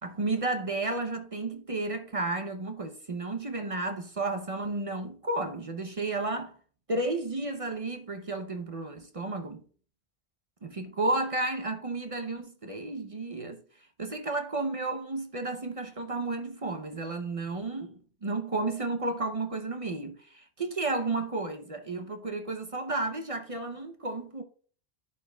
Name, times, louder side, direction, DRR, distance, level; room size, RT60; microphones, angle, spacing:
voice 1, 0.0-6.6 6.9-9.6 10.6-13.6 14.0-17.9 18.2-24.4, right 2 dB, 40° right, 0.6 m, -32 dB
11.0 x 5.0 x 2.2 m
omnidirectional pair, 1.1 m